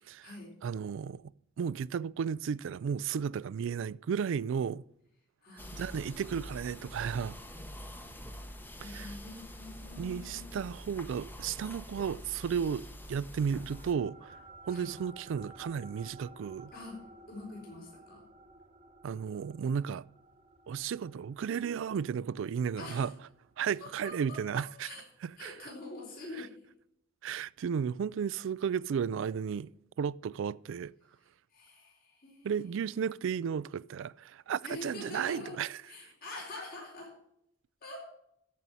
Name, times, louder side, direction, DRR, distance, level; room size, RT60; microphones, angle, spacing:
voice 1, 0.6-4.8 5.7-7.4 8.8-9.1 10.0-16.7 19.0-20.1 20.7-23.1 23.6-24.9 25.2-25.5 27.2-29.7 30.0-30.9 32.4-35.7, right 7 dB, 65° right, 0.3 m, -34 dB
voice 2, 5.4-6.4 8.8-10.6 14.7-15.0 16.7-18.2 22.8-23.1 23.8-25.1 25.4-26.5 31.5-32.8 34.6-37.2 37.8-38.0, left 2 dB, 50° left, 4.1 m, -46 dB
sound 1, 5.6-13.9, equal, 10° left, 0.9 m, -46 dB
sound 2, 13.5-24.3, right 2 dB, 35° right, 0.9 m, -55 dB
13.5 x 5.5 x 7.5 m
head